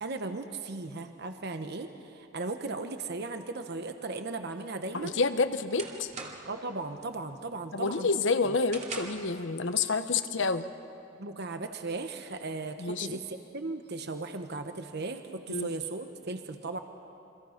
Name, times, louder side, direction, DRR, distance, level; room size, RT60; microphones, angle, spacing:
voice 1, 0.0-5.2 6.4-8.1 8.4-8.5 11.2-16.8, right 3 dB, 55° right, 7 dB, 1.1 m, -37 dB
voice 2, 4.9-6.1 7.7-10.6 12.8-13.2 15.5-15.7, left 4 dB, 65° left, 10 dB, 0.9 m, -28 dB
sound 1, 4.9-6.7 7.1-7.4 7.8-9.4, right 4 dB, 35° right, 2.5 m, -43 dB
28.5 x 24.5 x 5.9 m, 2.6 s
head